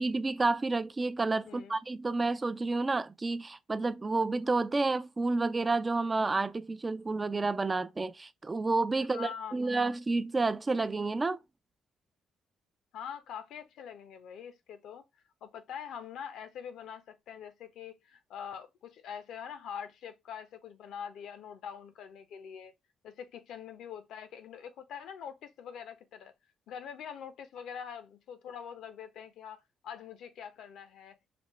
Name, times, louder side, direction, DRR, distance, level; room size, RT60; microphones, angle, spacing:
voice 1, 0.0-11.4, right 3 dB, 25° right, 0.4 m, -30 dB
voice 2, 1.4-1.8 9.1-9.9 12.9-15.0 15.4-22.7 23.0-26.3 26.7-31.2, left 8 dB, 80° left, 0.8 m, -44 dB
5.0 x 2.2 x 3.1 m
cardioid pair, 90°, 0 cm